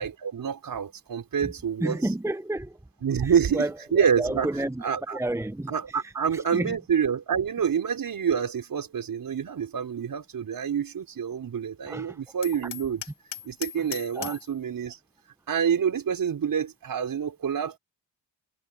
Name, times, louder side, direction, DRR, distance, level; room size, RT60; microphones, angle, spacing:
voice 1, 0.0-2.0 3.0-4.5 4.8-5.2 5.7-13.0 13.4-15.0 15.5-17.8, right 7 dB, 50° right, 5.1 m, -27 dB
voice 2, 1.8-2.8 3.2-4.8 5.1-5.7 6.3-6.8 11.9-12.2 13.8-13.9 14.1-14.4, right 1 dB, 5° right, 1.3 m, -31 dB
Hammer, 12.4-14.5, left 12 dB, 70° left, 2.2 m, -39 dB
supercardioid pair, 60°, 42 cm